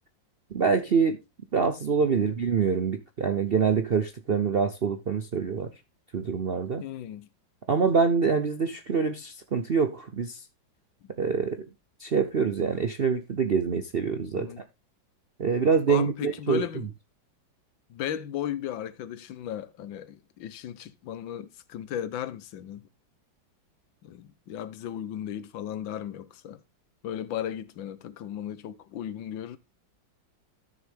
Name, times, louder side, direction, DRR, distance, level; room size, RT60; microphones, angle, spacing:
voice 1, 0.5-1.2 1.5-5.7 6.1-6.8 7.7-10.4 11.2-11.6 12.0-14.5 15.4-16.6, right 5 dB, 60° right, 0.6 m, -25 dB
voice 2, 2.0-2.3 6.8-7.3 14.4-14.6 15.9-16.9 17.9-22.9 24.0-26.6 27.0-29.6, left 10 dB, 85° left, 1.6 m, -36 dB
13.0 x 6.8 x 3.5 m
omnidirectional pair, 2.1 m